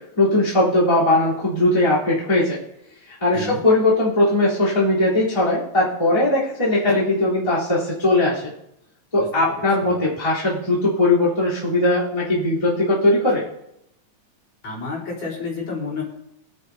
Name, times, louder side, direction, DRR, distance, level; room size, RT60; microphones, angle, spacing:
voice 1, 0.2-2.6 3.2-8.5 9.1-13.4, left 2 dB, 10° left, -8 dB, 3.4 m, -19 dB
voice 2, 14.6-16.0, left 4 dB, 45° left, -5 dB, 5.1 m, -30 dB
24.0 x 8.6 x 2.8 m, 0.80 s
omnidirectional pair, 3.7 m